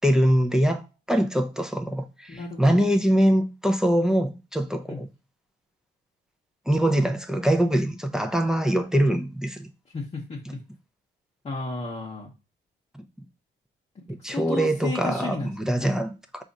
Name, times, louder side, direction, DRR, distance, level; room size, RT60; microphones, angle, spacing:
voice 1, 0.0-0.8 1.1-5.1 6.7-9.7 10.5-10.6 12.9-13.0 14.1-16.4, equal, 5° right, 0.6 m, -23 dB
voice 2, 2.3-2.9 4.9-5.0 9.9-10.6 11.4-12.3 14.2-16.0, left 3 dB, 30° left, 0.9 m, -34 dB
4.8 x 2.5 x 4.0 m
cardioid pair, 90°, 20 cm